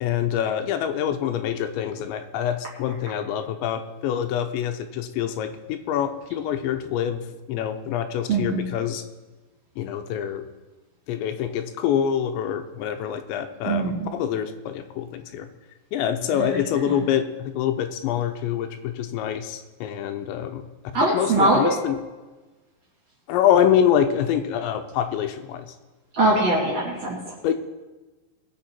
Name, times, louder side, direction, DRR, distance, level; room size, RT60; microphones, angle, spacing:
voice 1, 0.0-9.0 9.8-10.5 11.1-15.5 15.9-20.7 21.0-22.0 23.3-25.8 27.4-27.5, left 9 dB, 85° left, 7 dB, 3.0 m, -25 dB
voice 2, 8.3-8.6 13.6-14.1 16.3-16.5 20.9-21.8 26.1-27.3, right 2 dB, 40° right, -4 dB, 2.9 m, -22 dB
21.5 x 7.4 x 4.4 m, 1.2 s
omnidirectional pair, 5.2 m